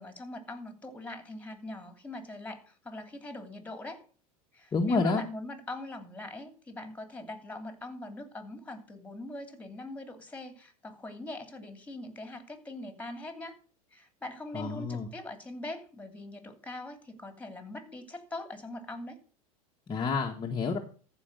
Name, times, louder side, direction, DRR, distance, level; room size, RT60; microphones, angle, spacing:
voice 1, 0.0-4.0 4.5-13.5 13.9-19.2, left 2 dB, 10° left, 8 dB, 2.7 m, -42 dB
voice 2, 4.7-5.2 14.5-15.1 19.9-20.8, left 4 dB, 25° left, 2 dB, 1.5 m, -28 dB
14.0 x 5.2 x 6.6 m, 0.41 s
hypercardioid pair, 105°, 19 cm